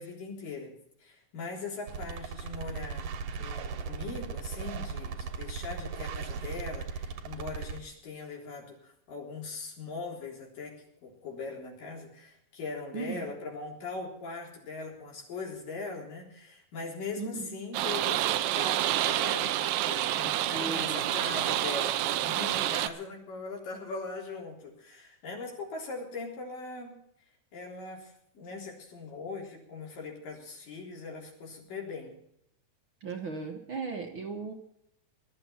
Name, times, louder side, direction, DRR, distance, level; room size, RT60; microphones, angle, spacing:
voice 1, 0.0-27.0 27.5-32.1, left 3 dB, 80° left, -1 dB, 5.4 m, -40 dB
sound 1, 1.9-7.8, right 5 dB, 65° right, 2.3 m, -37 dB
voice 2, 12.9-13.3 17.2-17.6 20.5-21.1 33.0-34.5, right 4 dB, 50° right, 2 dB, 1.6 m, -37 dB
sound 2, 17.7-22.9, right 13 dB, 90° right, 2.5 m, -28 dB
21.0 x 12.5 x 4.4 m, 0.77 s
omnidirectional pair, 3.8 m